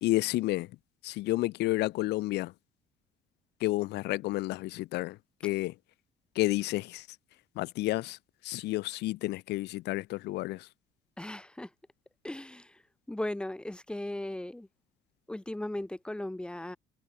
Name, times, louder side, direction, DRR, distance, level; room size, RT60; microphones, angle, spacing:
voice 1, 0.0-0.7 1.0-2.5 3.6-5.2 5.4-5.7 6.3-7.1 7.6-8.2 8.4-10.7, left 18 dB, 80° left, 1.1 m, -30 dB
voice 2, 11.2-11.7 12.2-12.8 13.1-14.7 15.3-16.8, left 1 dB, 5° left, 1.7 m, -37 dB
cardioid pair, 110°, 17 cm